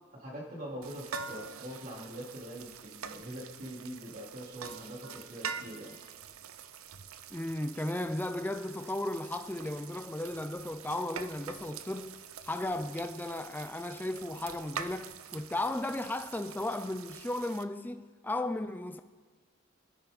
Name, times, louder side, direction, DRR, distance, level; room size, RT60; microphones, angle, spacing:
voice 1, 0.1-5.9, equal, 40° right, 3.5 m, -43 dB
sound 1, 0.8-17.6, right 7 dB, 85° right, 0.6 m, -45 dB
voice 2, 7.3-19.0, left 1 dB, 10° left, 0.4 m, -35 dB
26.0 x 9.7 x 4.0 m
head